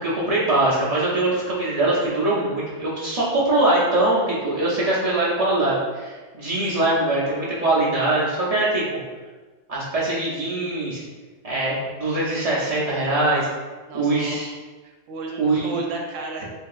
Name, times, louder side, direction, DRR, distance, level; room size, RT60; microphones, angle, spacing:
voice 1, 0.0-9.0 9.7-11.0 11.4-13.5 13.9-14.5 15.4-15.8, right 2 dB, 40° right, -7 dB, 0.5 m, -22 dB
voice 2, 13.9-14.4 14.8-16.5, right 3 dB, 80° right, 0 dB, 1.0 m, -32 dB
3.4 x 2.7 x 2.3 m, 1.3 s
omnidirectional pair, 1.3 m